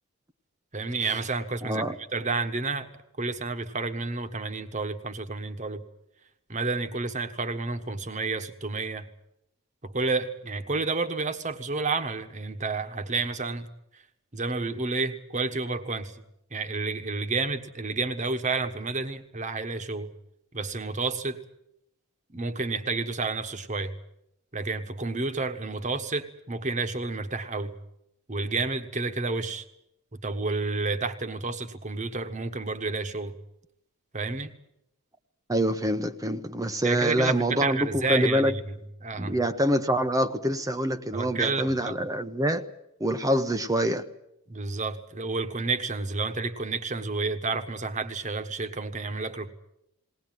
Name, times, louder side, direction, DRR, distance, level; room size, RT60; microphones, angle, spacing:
voice 1, 0.7-1.8 2.1-2.9 3.2-5.8 6.5-9.1 9.8-13.7 13.9-14.0 14.3-16.2 16.5-20.1 20.5-21.4 22.3-23.9 24.5-27.7 28.3-29.6 30.1-33.3 34.1-34.5 36.8-39.3 41.1-42.0 44.5-49.5, right 3 dB, 35° right, 1.4 m, -30 dB
voice 2, 1.6-2.0 35.5-38.5 39.2-42.7 43.0-44.0, equal, 15° right, 0.8 m, -25 dB
20.5 x 18.5 x 9.3 m
head